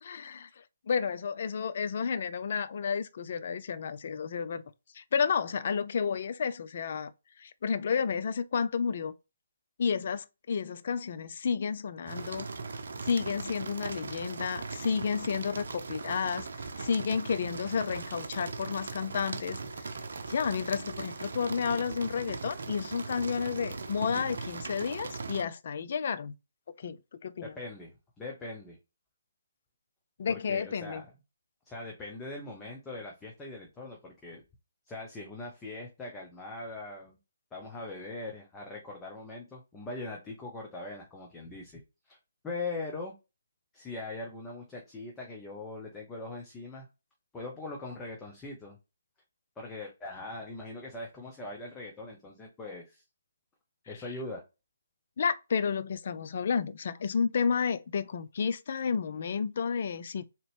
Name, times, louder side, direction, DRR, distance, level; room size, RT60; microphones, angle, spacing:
voice 1, 0.0-4.6 4.9-7.1 7.4-9.1 9.8-12.5 13.0-16.5 16.8-19.9 20.3-26.3 26.8-27.5 30.2-31.0 55.2-60.2, left 6 dB, 50° left, 0.3 m, -31 dB
sound 1, 12.0-25.4, right 4 dB, 65° right, 0.6 m, -39 dB
voice 2, 27.4-28.8 30.3-31.1 31.6-34.4 34.9-37.2 37.5-41.8 42.1-42.2 42.4-43.1 43.7-46.9 47.3-48.8 49.6-53.0 53.9-54.4, left 2 dB, 10° left, 0.8 m, -41 dB
3.9 x 2.9 x 3.2 m
figure-of-eight pair, 145°, 0 cm